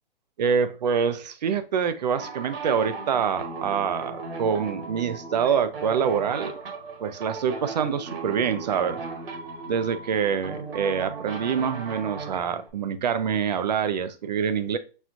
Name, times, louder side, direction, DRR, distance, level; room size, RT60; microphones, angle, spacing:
voice 1, 0.4-6.5 7.0-9.0 9.7-14.8, right 7 dB, 45° right, 0.5 m, -26 dB
sound 1, 2.1-12.7, right 4 dB, 65° right, 1.4 m, -37 dB
6.1 x 2.3 x 2.5 m
hypercardioid pair, 160°, 31 cm